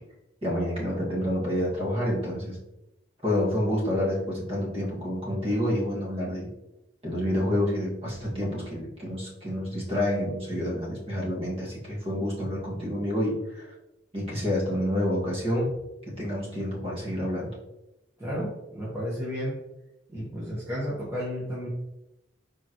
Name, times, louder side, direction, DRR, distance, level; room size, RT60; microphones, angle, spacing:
voice 1, 0.4-2.6 3.2-6.5 7.0-13.7 14.1-15.8 16.1-17.5, left 1 dB, 35° right, -5 dB, 2.2 m, -28 dB
voice 2, 18.2-19.6 20.1-21.7, equal, 15° right, -8 dB, 1.4 m, -32 dB
7.0 x 4.8 x 3.2 m, 0.93 s
head